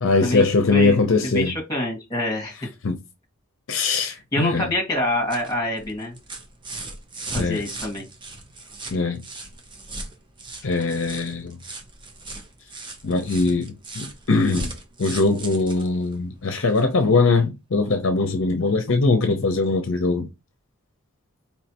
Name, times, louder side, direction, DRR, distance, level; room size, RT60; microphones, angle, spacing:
voice 1, 0.0-1.5 2.8-3.0 3.7-4.7 7.4-7.6 8.9-9.2 10.6-11.6 13.0-14.7 15.0-20.3, left 3 dB, 60° left, 0.6 m, -21 dB
voice 2, 0.7-2.7 4.3-6.1 7.3-8.1, left 1 dB, 15° left, 1.6 m, -26 dB
sound 1, 4.9-17.0 18.3-18.4, right 2 dB, 20° right, 0.6 m, -38 dB
4.5 x 3.2 x 2.8 m
head